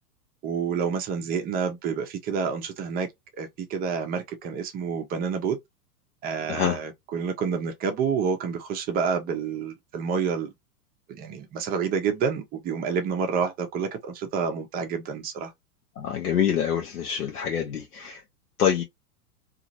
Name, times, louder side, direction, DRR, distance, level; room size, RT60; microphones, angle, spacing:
voice 1, 0.4-3.1 3.4-5.6 6.2-10.5 11.1-15.5, right 6 dB, 20° right, 0.6 m, -28 dB
voice 2, 16.0-18.2 18.6-18.8, left 8 dB, 75° left, 0.8 m, -25 dB
2.8 x 2.5 x 2.6 m
figure-of-eight pair, 95°, 46 cm